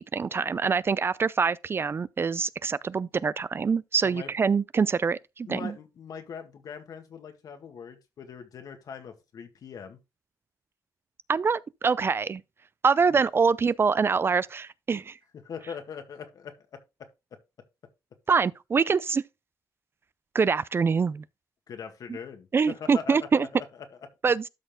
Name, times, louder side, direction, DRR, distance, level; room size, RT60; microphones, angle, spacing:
voice 1, 0.0-5.7 11.3-12.4 12.8-15.2 18.3-19.2 20.3-21.2 22.5-23.5 24.2-24.4, right 5 dB, 35° right, 0.4 m, -25 dB
voice 2, 5.5-10.0 13.1-13.2 15.4-17.1 21.7-23.9, left 6 dB, 65° left, 1.9 m, -41 dB
12.5 x 4.3 x 3.7 m
cardioid pair, 90°, 7 cm